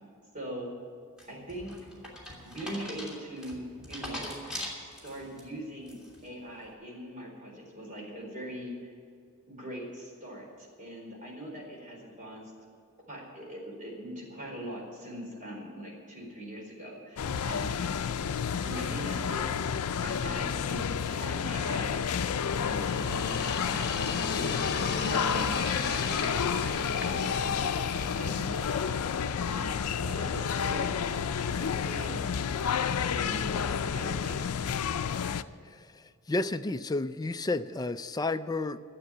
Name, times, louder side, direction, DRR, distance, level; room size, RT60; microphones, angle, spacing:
voice 1, 0.3-0.7 1.3-1.7 2.4-4.4 4.8-8.9 9.5-12.5 13.1-17.9 18.6-19.7 20.0-22.3 22.6-24.9 25.3-25.8 26.1-29.2 29.5-34.5, equal, 35° right, 4.4 m, -42 dB
sound 1, 1.2-5.4 5.9-6.3, left 1 dB, 5° right, 3.0 m, -41 dB
sound 2, 17.2-35.4, left 7 dB, 90° left, 0.5 m, -30 dB
sound 3, 18.7-30.3, left 4 dB, 50° left, 1.1 m, -37 dB
voice 2, 35.7-38.8, left 2 dB, 15° left, 0.4 m, -32 dB
12.5 x 8.3 x 10.0 m
head